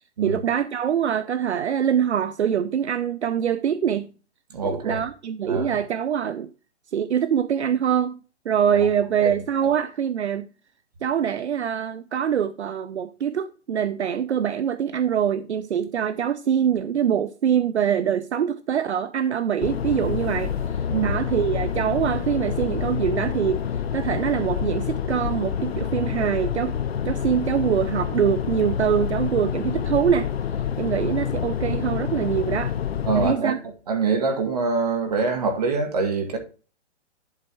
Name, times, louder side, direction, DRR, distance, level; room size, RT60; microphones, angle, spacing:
voice 1, 0.2-4.1 4.6-6.5 6.9-8.2 8.5-10.5 11.0-20.5 21.0-23.6 23.9-26.8 27.0-30.3 30.8-32.7 33.1-33.6, right 8 dB, 70° right, 0.6 m, -24 dB
voice 2, 4.5-5.0 5.5-5.8 9.2-9.4 20.9-21.2 33.1-33.6 33.9-36.4, right 4 dB, 35° right, 1.9 m, -24 dB
sound 1, 19.6-33.3, left 8 dB, 55° left, 0.6 m, -27 dB
11.0 x 4.4 x 4.5 m
hypercardioid pair, 180°, 36 cm